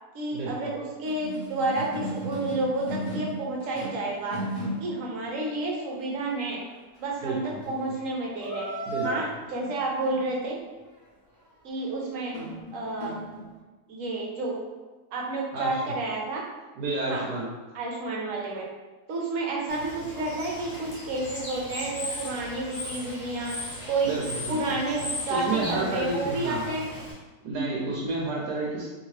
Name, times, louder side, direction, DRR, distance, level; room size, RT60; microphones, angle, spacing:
voice 1, 0.1-4.4 4.8-6.6 7.0-8.7 9.0-10.6 11.6-12.4 12.7-13.1 13.9-14.5 15.1-16.4 17.1-17.2 17.7-18.7 19.1-23.5 23.9-24.2 24.5-26.8, right 2 dB, 60° right, -1 dB, 1.0 m, -30 dB
sound 1, 1.0-4.1 4.3-4.9 5.7-5.8 6.4-6.7 7.1-7.2 7.4-8.1 8.4-9.3 9.6-9.7 10.1-10.2 11.8-11.9 12.3-13.4, equal, 20° left, 0.7 m, -34 dB
voice 2, 7.2-7.6 8.9-9.1 15.5-15.8 16.8-17.5 24.0-24.8 25.3-26.7 27.4-28.9, right 2 dB, 90° right, -4 dB, 1.2 m, -30 dB
Bird / Water, 19.7-27.1, left 1 dB, 60° left, 1.3 m, -37 dB
2.8 x 2.8 x 3.1 m, 1.2 s
omnidirectional pair, 1.7 m